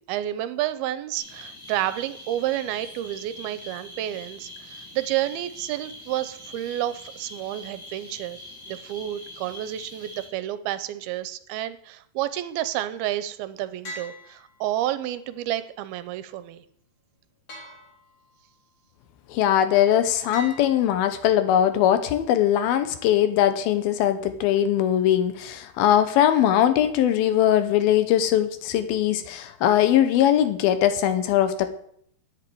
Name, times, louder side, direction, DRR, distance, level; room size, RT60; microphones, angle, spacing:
voice 1, 0.0-8.4 8.7-16.6, right 13 dB, 85° right, 13 dB, 2.6 m, -30 dB
sound 1, 1.1-10.3, left 1 dB, 5° left, 3.2 m, -43 dB
sound 2, 13.8-15.1 17.5-18.6 20.3-21.6, equal, 35° left, 3.3 m, -42 dB
voice 2, 19.3-31.7, left 11 dB, 75° left, 10 dB, 2.7 m, -21 dB
10.0 x 8.3 x 9.3 m, 0.68 s
omnidirectional pair, 4.5 m